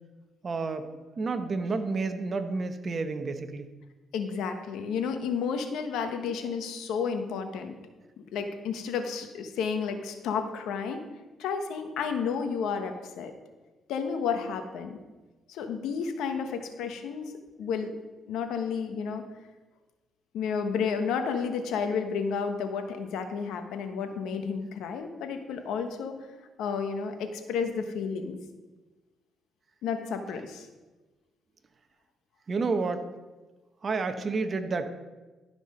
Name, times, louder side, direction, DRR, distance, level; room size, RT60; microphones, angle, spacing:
voice 1, 0.4-0.9 1.2-3.7 32.5-33.1 33.8-34.9, right 4 dB, 40° right, 8 dB, 1.0 m, -30 dB
voice 2, 4.1-7.7 8.3-11.0 11.4-13.3 13.9-15.0 15.5-17.3 17.6-17.9 18.3-19.2 20.3-26.2 26.6-28.4 29.8-30.7, left 6 dB, 85° left, 6 dB, 1.1 m, -31 dB
12.5 x 5.9 x 5.5 m, 1.2 s
cardioid pair, 90°, 0 cm